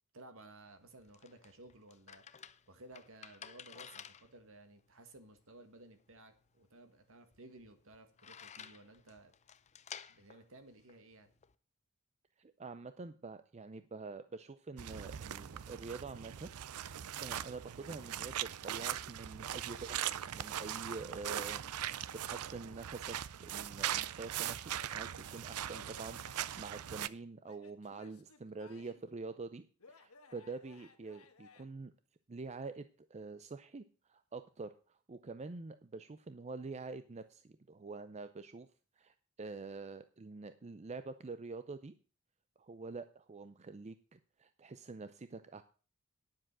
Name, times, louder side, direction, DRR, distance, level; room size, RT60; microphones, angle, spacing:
voice 1, 0.1-2.2 2.7-9.3 10.1-11.3, right 2 dB, 65° right, 8 dB, 1.8 m, -56 dB
sound 1, 0.7-11.6, left 8 dB, 30° left, 0.5 m, -54 dB
voice 2, 12.4-16.5 17.2-21.6 22.1-31.9 32.3-33.8 34.1-38.7 39.0-41.9 42.6-45.6, right 3 dB, 30° right, 11 dB, 0.5 m, -46 dB
sound 2, 14.8-27.1, right 11 dB, 85° right, 0.5 m, -40 dB
Male speech man speaking / Yell / Laughter, 24.6-26.7 27.4-29.1 29.8-31.6, left 4 dB, 80° left, 1.5 m, -60 dB
10.0 x 7.6 x 6.0 m, 0.39 s
head